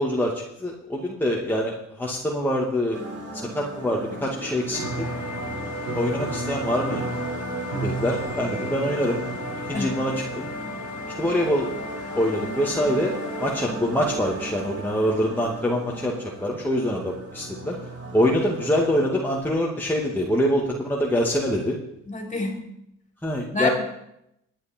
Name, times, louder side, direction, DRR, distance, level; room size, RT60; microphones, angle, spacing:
voice 1, 0.0-3.0 3.3-5.1 5.9-7.0 7.8-9.2 9.7-10.1 10.4-10.5 11.2-11.7 12.2-13.1 13.4-17.7 18.1-21.8 23.2-23.7, equal, 5° left, -3 dB, 2.2 m, -25 dB
sound 1, 2.9-19.1, right 2 dB, 50° right, 4.2 m, -36 dB
sound 2, 4.7-13.6, left 4 dB, 70° left, 2.0 m, -37 dB
Piano, 4.7-13.2, right 3 dB, 85° right, 5.8 m, -37 dB
voice 2, 22.1-22.6 23.5-23.7, left 2 dB, 25° left, 2 dB, 3.7 m, -27 dB
18.5 x 10.0 x 4.5 m, 0.80 s
cardioid pair, 90°, 30 cm